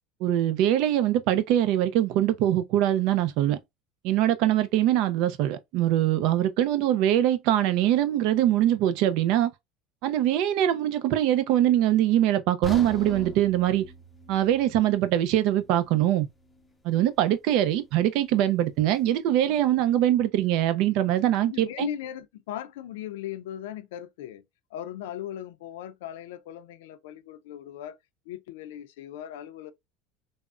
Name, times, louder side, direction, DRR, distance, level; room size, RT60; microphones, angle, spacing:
voice 1, 0.2-3.6 4.0-9.5 10.0-13.9 14.3-16.3 16.8-21.9, right 12 dB, 65° right, 0.4 m, -23 dB
sound 1, 12.6-16.7 17.0-17.2 17.8-17.9, right 1 dB, 5° left, 0.6 m, -41 dB
voice 2, 21.5-24.4 24.7-28.0 28.3-29.7, left 11 dB, 85° left, 0.4 m, -38 dB
3.4 x 2.0 x 2.4 m
supercardioid pair, 120°, 0 cm